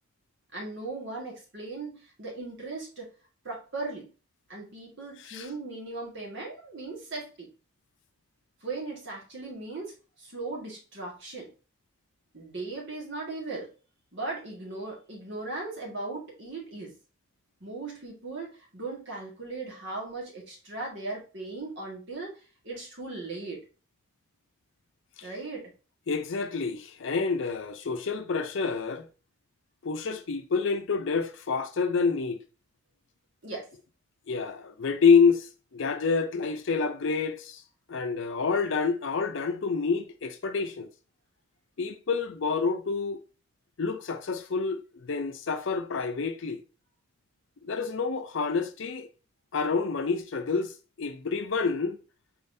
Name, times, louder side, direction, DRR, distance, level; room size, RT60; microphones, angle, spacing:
voice 1, 0.5-3.1 3.4-4.1 4.5-7.5 8.6-11.5 12.3-13.7 14.1-16.9 17.6-23.6 25.2-25.7 33.4-33.7, right 3 dB, 55° right, 1.7 m, -38 dB
voice 2, 26.1-29.1 29.8-32.4 34.3-37.6 37.9-40.9 41.8-43.2 43.8-46.6 47.6-49.1 49.5-52.0, left 5 dB, 60° left, 0.5 m, -28 dB
4.3 x 3.7 x 2.6 m
head